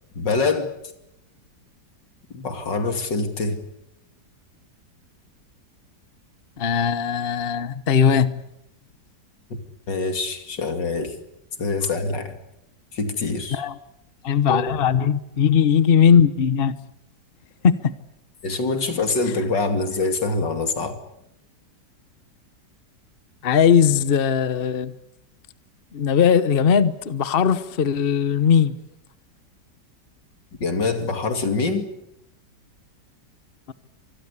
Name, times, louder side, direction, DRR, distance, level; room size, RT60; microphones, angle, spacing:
voice 1, 0.1-0.7 2.3-3.6 9.9-11.2 11.6-12.4 12.9-13.6 14.5-14.6 18.4-21.0 30.6-31.9, left 3 dB, 85° left, 7 dB, 3.3 m, -24 dB
voice 2, 6.6-8.3 13.5-13.7 14.2-16.8 17.6-17.9 23.4-24.9 25.9-28.7, left 7 dB, 40° left, 14 dB, 1.1 m, -19 dB
26.0 x 21.0 x 8.4 m, 0.82 s
omnidirectional pair, 1.9 m